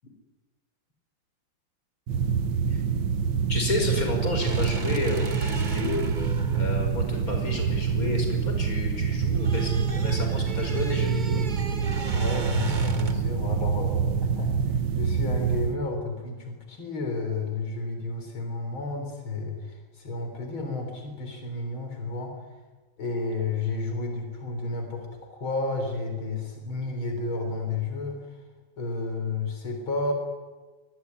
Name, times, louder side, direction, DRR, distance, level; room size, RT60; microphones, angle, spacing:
sound 1, 2.1-15.8, right 6 dB, 80° right, 2.0 m, -26 dB
voice 1, 3.5-6.1 6.5-11.4, left 1 dB, 45° left, 3 dB, 5.9 m, -31 dB
sound 2, 4.4-8.6 8.9-13.3, right 3 dB, 25° right, 1.3 m, -38 dB
voice 2, 12.1-22.3 23.0-28.2 28.8-30.1, left 3 dB, 85° left, 4 dB, 4.7 m, -31 dB
25.5 x 21.0 x 9.7 m, 1.3 s
omnidirectional pair, 2.2 m